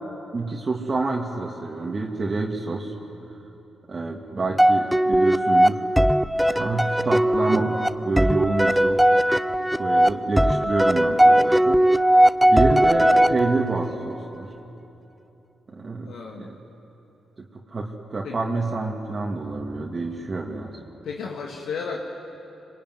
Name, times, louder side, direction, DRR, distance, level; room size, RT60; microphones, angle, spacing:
voice 1, 0.3-2.9 3.9-5.8 6.5-9.0 9.8-11.8 12.5-14.5 15.7-16.6 17.4-20.8, right 3 dB, 40° right, -2 dB, 2.5 m, -27 dB
sound 1, 4.6-13.9, right 1 dB, 5° right, 0.8 m, -19 dB
voice 2, 10.3-10.7 16.0-16.5 18.2-18.4 21.0-22.1, left 5 dB, 75° left, -1 dB, 2.2 m, -34 dB
26.0 x 22.5 x 9.6 m, 3.0 s
supercardioid pair, 55°, 0 cm